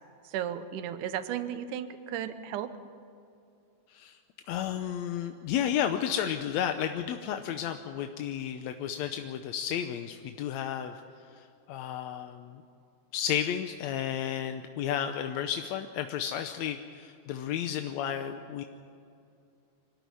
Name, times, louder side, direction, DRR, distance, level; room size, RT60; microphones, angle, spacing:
voice 1, 0.2-2.7, right 10 dB, 80° right, 11 dB, 2.4 m, -34 dB
voice 2, 4.5-11.0 11.3-12.6 13.1-18.6, left 9 dB, 70° left, 7 dB, 1.8 m, -32 dB
25.0 x 13.5 x 9.6 m, 2.5 s
omnidirectional pair, 3.7 m